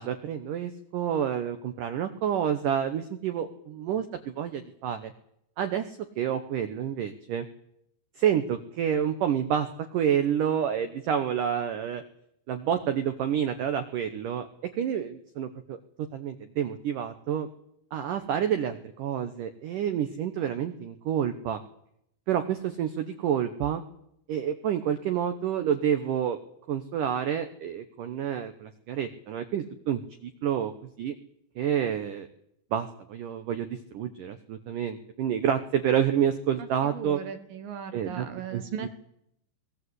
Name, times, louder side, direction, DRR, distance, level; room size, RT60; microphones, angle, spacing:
voice 1, 0.0-5.1 5.6-7.5 8.2-12.0 12.5-14.5 14.8-17.5 17.9-21.6 22.3-23.8 24.3-26.4 26.7-30.7 31.0-31.1 31.6-32.3 32.7-37.2 37.9-38.3 38.5-38.9, right 9 dB, 85° right, 9 dB, 1.8 m, -29 dB
voice 2, 36.6-38.9, right 7 dB, 65° right, 8 dB, 2.5 m, -38 dB
22.5 x 19.0 x 8.1 m, 0.77 s
omnidirectional pair, 5.4 m